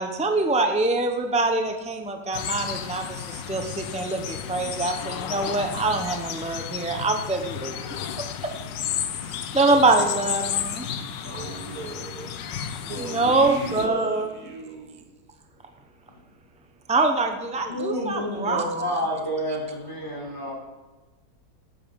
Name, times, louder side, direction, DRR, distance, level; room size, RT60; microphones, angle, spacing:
voice 1, 0.0-7.9 8.4-8.5 9.3-10.9 13.0-14.3 16.9-18.9, right 3 dB, 10° right, 4 dB, 0.3 m, -24 dB
sound 1, 2.3-13.9, left 9 dB, 85° left, 1.5 m, -33 dB
voice 2, 11.2-12.3 12.9-15.0, right 4 dB, 55° right, 3 dB, 1.5 m, -37 dB
voice 3, 17.6-20.5, equal, 10° left, -3 dB, 4.0 m, -29 dB
12.0 x 9.1 x 5.2 m, 1.2 s
omnidirectional pair, 1.9 m